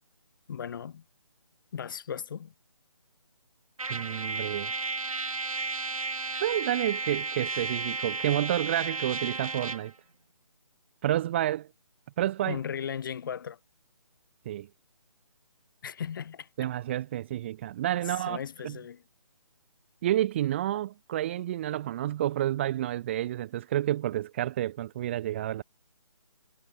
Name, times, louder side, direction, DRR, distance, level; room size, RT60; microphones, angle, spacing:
voice 1, 0.5-1.0 1.7-2.5 12.5-13.6 15.8-16.5 18.3-19.0, left 8 dB, 40° left, 7.0 m, -36 dB
Trumpet, 3.8-9.9, right 3 dB, 85° right, 4.2 m, -33 dB
voice 2, 3.9-4.7 6.4-9.9 11.0-11.7 12.2-12.6 14.4-14.7 16.6-18.4 18.6-18.8 20.0-25.6, right 13 dB, 20° right, 1.3 m, -29 dB
hypercardioid pair, 165°, 17 cm